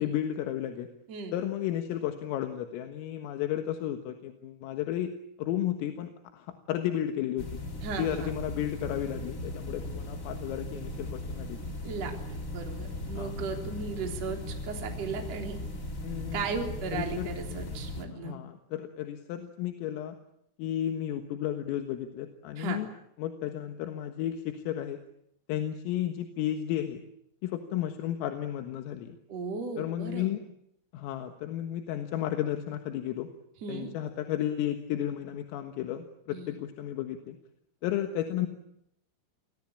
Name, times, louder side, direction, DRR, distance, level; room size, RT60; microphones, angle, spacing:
voice 1, 0.0-0.9 1.3-7.5 8.0-11.6 13.2-13.3 16.0-16.5 16.9-17.3 18.2-20.2 20.6-22.9 23.2-25.0 25.5-27.0 27.4-29.2 29.8-30.5 30.9-33.3 33.7-37.4 37.8-38.5, left 11 dB, 80° left, 6 dB, 4.1 m, -33 dB
sound 1, 7.4-18.0, left 1 dB, 40° left, 1.1 m, -38 dB
voice 2, 7.8-8.3 11.8-15.6 16.3-18.4 22.6-22.8 29.3-30.3 33.6-33.9 36.3-36.6, right 4 dB, 35° right, 3 dB, 4.1 m, -36 dB
28.0 x 21.5 x 8.7 m, 0.75 s
omnidirectional pair, 5.9 m